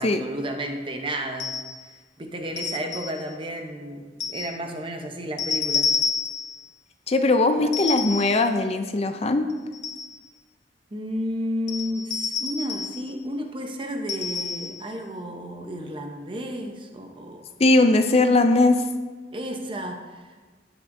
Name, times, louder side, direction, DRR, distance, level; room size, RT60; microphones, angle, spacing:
voice 1, 0.0-1.5 1.8-5.9 7.6-7.7 10.9-17.5 19.3-20.3, equal, 30° right, 4 dB, 0.8 m, -32 dB
sound 1, 1.4-1.8 2.6-3.2 4.2-4.5 5.4-6.6 7.7-8.4 9.5-10.2 11.7-13.0 14.1-14.8, left 5 dB, 85° left, 0.8 m, -29 dB
voice 2, 7.1-9.5 17.6-18.8, left 2 dB, 35° left, 8 dB, 0.4 m, -19 dB
16.0 x 5.9 x 2.6 m, 1.4 s
head